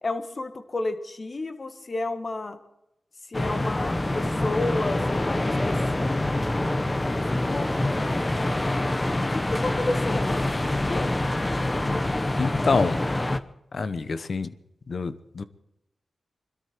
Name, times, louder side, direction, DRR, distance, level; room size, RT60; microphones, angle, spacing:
voice 1, 0.0-2.6 3.3-6.2 7.1-7.7 9.3-10.5 10.8-11.1, left 2 dB, 45° left, 9 dB, 1.6 m, -31 dB
sound 1, 3.3-13.4, left 1 dB, 25° left, 0.9 m, -26 dB
voice 2, 12.4-13.0 13.7-14.5 14.9-15.4, left 4 dB, 60° left, 14 dB, 1.0 m, -26 dB
21.5 x 13.0 x 4.6 m, 0.85 s
cardioid pair, 55°, 0 cm